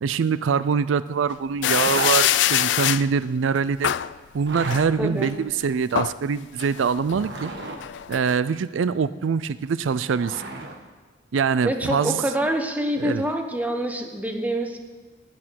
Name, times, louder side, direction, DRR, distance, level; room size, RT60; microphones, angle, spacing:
voice 1, 0.0-3.9 4.3-7.5 8.1-10.5 11.3-12.2 13.0-13.2, right 6 dB, 85° right, 16 dB, 0.4 m, -24 dB
sound 1, 1.6-3.1 3.8-4.1 4.7-5.3 5.7-6.2 6.6-8.3, left 12 dB, 70° left, 0.3 m, -24 dB
Zipper (clothing), 1.8-2.2 4.3-4.8 6.9-7.8 9.7-10.8, right 2 dB, 60° right, 1.4 m, -34 dB
voice 2, 5.0-5.3 11.6-14.8, right 1 dB, 10° right, 4 dB, 1.1 m, -26 dB
11.5 x 8.8 x 9.2 m, 1.3 s
head